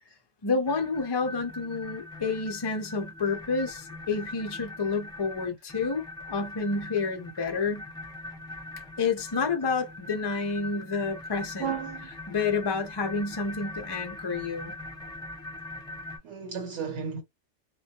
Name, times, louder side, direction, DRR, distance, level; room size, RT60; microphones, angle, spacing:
voice 1, 0.4-7.8 9.0-11.7 12.3-14.8, left 4 dB, 35° left, 0.4 m, -29 dB
sound 1, 0.7-16.2, left 2 dB, 5° left, 0.8 m, -42 dB
voice 2, 11.6-12.2 16.2-17.2, right 6 dB, 75° right, 1.1 m, -34 dB
2.2 x 2.1 x 2.8 m
omnidirectional pair, 1.2 m